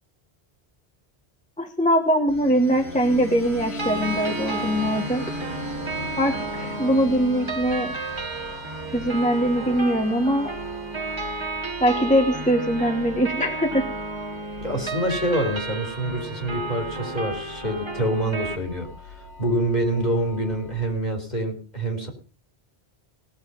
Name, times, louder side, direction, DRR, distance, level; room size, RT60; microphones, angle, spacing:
voice 1, 1.6-5.2 6.2-7.9 8.9-10.5 11.8-13.9, equal, 5° left, 4 dB, 1.1 m, -22 dB
sound 1, 2.3-20.9, left 2 dB, 80° left, 3.6 m, -39 dB
sound 2, 3.8-18.6, right 3 dB, 25° right, 1.3 m, -32 dB
voice 2, 14.6-18.9 19.4-22.1, right 1 dB, 45° left, 3 dB, 2.8 m, -26 dB
18.5 x 6.8 x 5.3 m, 0.39 s
omnidirectional pair, 1.1 m